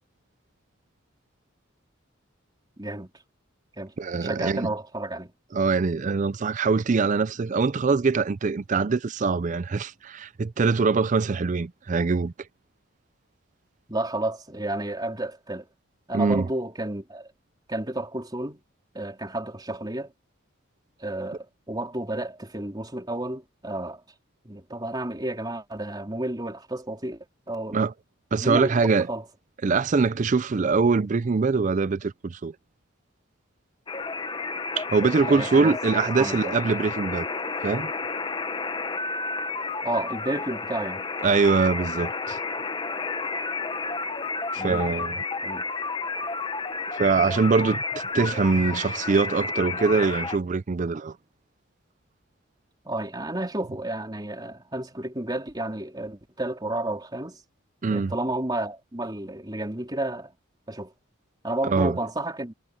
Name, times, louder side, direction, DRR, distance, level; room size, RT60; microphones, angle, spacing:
voice 1, 2.8-3.1 3.8-5.3 13.9-15.6 16.1-17.3 17.7-18.6 18.9-20.1 21.0-24.0 24.5-27.8 28.4-28.8 29.1-29.2 35.2-35.8 36.2-36.5 39.8-41.1 44.6-44.8 45.4-45.6 52.9-57.4 57.9-60.3 60.7-60.9 61.4-62.5, right 1 dB, 20° right, 3.6 m, -31 dB
voice 2, 4.0-4.7 5.5-12.3 16.1-16.5 27.7-27.9 28.3-29.1 29.6-32.5 34.8-37.3 37.6-37.9 41.2-42.4 44.5-45.2 46.9-51.2 57.8-58.1 61.6-62.0, right 4 dB, 40° right, 0.4 m, -23 dB
sound 1, 33.9-50.4, left 4 dB, 25° left, 0.8 m, -31 dB
head